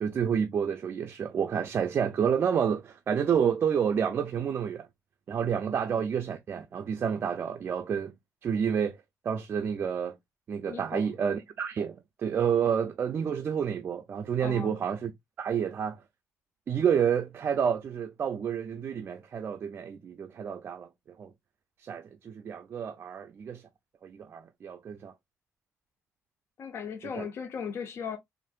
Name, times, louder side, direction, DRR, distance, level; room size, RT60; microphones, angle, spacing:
voice 1, 0.0-4.9 5.3-8.1 8.4-9.0 9.2-10.2 10.5-15.1 15.4-16.0 16.7-20.9 21.2-21.3 21.8-23.6 24.0-25.1 27.2-27.3, right 7 dB, 40° right, 0.3 m, -29 dB
voice 2, 10.7-11.1 14.4-14.8 26.6-28.2, left 7 dB, 50° left, 0.4 m, -37 dB
3.5 x 2.5 x 2.2 m
cardioid pair, 130°, 6 cm